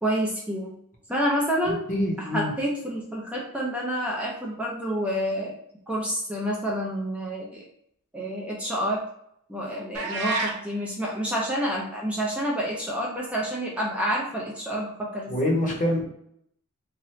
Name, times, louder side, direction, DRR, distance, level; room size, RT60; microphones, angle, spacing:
voice 1, 0.0-0.8 1.1-1.8 2.2-5.6 5.9-7.6 8.1-9.0 9.5-15.4, equal, 5° right, -3 dB, 0.5 m, -28 dB
voice 2, 1.9-2.5 15.3-16.0, left 1 dB, 35° left, 0 dB, 0.8 m, -25 dB
sound 1, 9.9-10.6, right 3 dB, 85° right, 0.6 m, -28 dB
2.8 x 2.5 x 3.1 m, 0.72 s
head